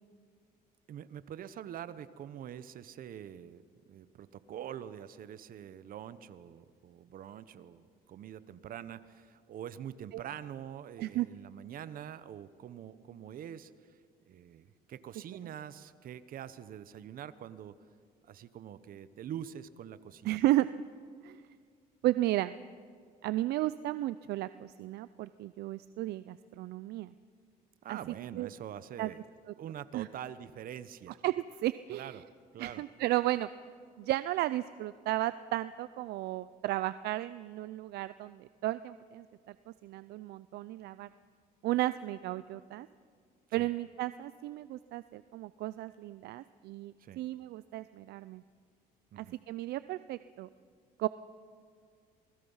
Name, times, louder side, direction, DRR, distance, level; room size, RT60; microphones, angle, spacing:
voice 1, 0.9-13.7 14.3-17.7 18.2-20.4 27.8-29.2 29.6-31.2 31.9-32.3 32.5-32.8 43.6-43.7 47.0-47.2 49.1-49.4, right 10 dB, 55° right, 14 dB, 1.0 m, -45 dB
voice 2, 20.2-20.7 21.2-21.4 22.0-22.6 23.2-27.1 27.9-28.0 28.4-28.5 29.0-29.1 29.9-30.1 31.2-31.3 31.6-32.2 32.6-33.5 34.0-41.1 41.6-42.9 43.5-48.4 49.2-50.5 51.0-51.1, right 16 dB, 75° right, 15 dB, 0.5 m, -34 dB
28.0 x 20.0 x 5.6 m, 2.1 s
cardioid pair, 110°, 17 cm